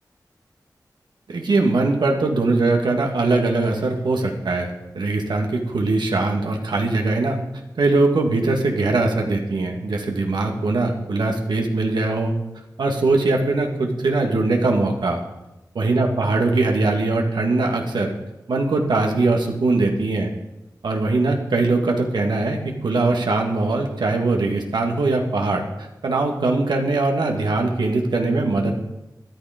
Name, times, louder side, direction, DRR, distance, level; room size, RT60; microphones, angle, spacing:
voice 1, 1.3-7.4 7.8-12.3 12.8-15.2 15.8-18.1 18.5-20.3 20.8-25.6 26.0-28.7, right 3 dB, 90° right, 2 dB, 2.0 m, -21 dB
13.0 x 11.5 x 5.2 m, 0.96 s
cardioid pair, 40°, 7 cm